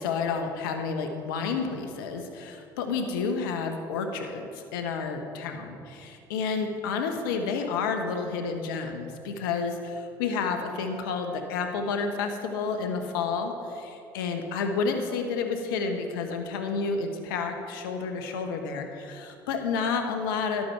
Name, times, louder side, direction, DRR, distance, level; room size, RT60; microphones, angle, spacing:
voice 1, 0.0-20.6, left 5 dB, 85° left, 5 dB, 1.1 m, -30 dB
11.5 x 8.5 x 4.5 m, 2.5 s
hypercardioid pair, 65°, 11 cm